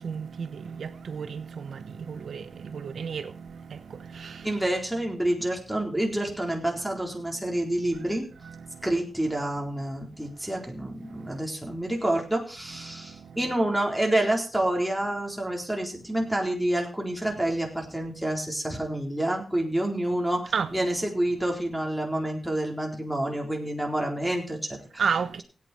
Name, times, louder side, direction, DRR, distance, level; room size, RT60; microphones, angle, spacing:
voice 1, 0.0-4.5 8.6-8.9 11.2-11.4 12.9-13.4 20.5-20.7 25.0-25.4, right 6 dB, 80° right, 1.1 m, -33 dB
voice 2, 4.4-8.3 8.8-25.0, right 1 dB, 5° right, 4.0 m, -28 dB
16.5 x 9.2 x 4.4 m
cardioid pair, 60°, 0 cm